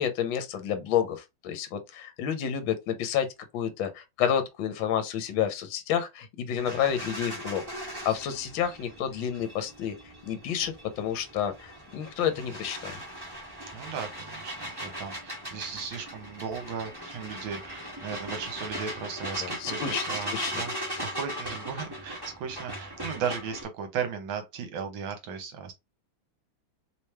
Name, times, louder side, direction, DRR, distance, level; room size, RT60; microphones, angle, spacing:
voice 1, 0.0-3.3 3.5-9.9 10.2-13.0 19.4-20.7 20.9-21.0, left 9 dB, 70° left, 1.4 m, -30 dB
sound 1, 6.6-23.6, equal, 15° right, 1.1 m, -39 dB
voice 2, 13.7-14.5 14.8-25.7, right 6 dB, 70° right, 1.6 m, -36 dB
3.5 x 3.1 x 3.1 m
omnidirectional pair, 2.4 m